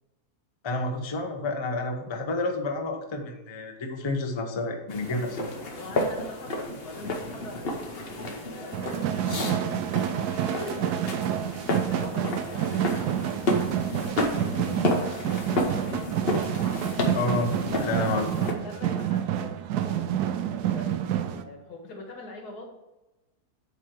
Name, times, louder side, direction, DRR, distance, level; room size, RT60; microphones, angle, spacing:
voice 1, 0.6-5.5 17.1-17.5 17.8-18.3, left 2 dB, 25° left, 3 dB, 0.6 m, -29 dB
sound 1, 4.9-18.5, left 1 dB, 45° left, 1.0 m, -31 dB
voice 2, 5.8-11.5 11.9-13.5 14.0-16.0 17.8-21.0 21.3-22.7, left 2 dB, 85° left, 1 dB, 2.1 m, -43 dB
sound 2, 8.7-21.4, right 10 dB, 90° right, 1.1 m, -28 dB
8.2 x 3.2 x 5.9 m, 1.0 s
omnidirectional pair, 1.6 m